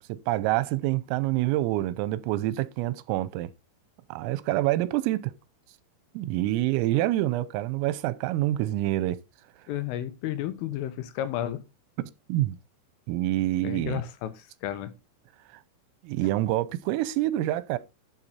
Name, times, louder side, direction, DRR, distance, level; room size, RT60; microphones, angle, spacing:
voice 1, 0.0-3.5 4.1-5.3 6.1-9.2 12.3-12.6 13.1-14.0 16.0-17.8, right 15 dB, 85° right, 3.4 m, -26 dB
voice 2, 9.7-11.6 13.6-14.9, left 12 dB, 80° left, 3.6 m, -32 dB
12.0 x 6.3 x 4.2 m
omnidirectional pair, 5.8 m